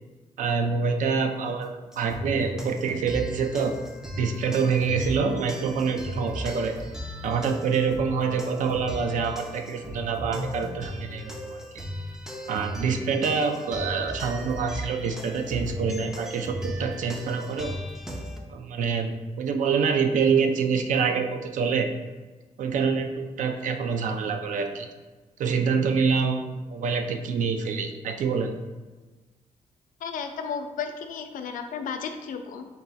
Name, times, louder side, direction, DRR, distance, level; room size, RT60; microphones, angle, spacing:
voice 1, 0.4-3.8 4.2-6.7 7.2-11.6 12.5-17.8 18.5-21.9 22.6-24.9 25.4-28.5, right 5 dB, 70° right, 5 dB, 0.4 m, -26 dB
sound 1, 1.9-18.4, equal, 5° right, 0.4 m, -36 dB
voice 2, 30.0-32.7, left 6 dB, 80° left, 6 dB, 0.4 m, -33 dB
3.9 x 2.3 x 4.0 m, 1.3 s
wide cardioid pair, 165°, 14 cm